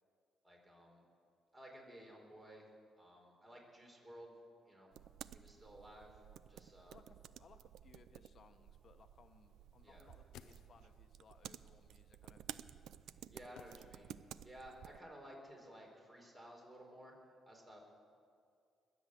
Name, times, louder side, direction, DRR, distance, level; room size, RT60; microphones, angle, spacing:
voice 1, 0.4-1.0 1.5-2.7 3.0-4.3 4.6-4.9 5.3-6.2 6.5-7.0 9.8-10.1 13.1-17.2 17.5-17.8, equal, 20° right, 0 dB, 4.2 m, -56 dB
sound 1, 4.9-15.0, right 10 dB, 80° right, 0.4 m, -54 dB
voice 2, 6.9-12.7, left 5 dB, 50° left, 8 dB, 1.1 m, -65 dB
sound 2, 10.0-11.2 13.6-14.5 14.7-14.8, left 10 dB, 90° left, 0.6 m, -60 dB
21.0 x 8.2 x 7.6 m, 2.3 s
cardioid pair, 90°, 0 cm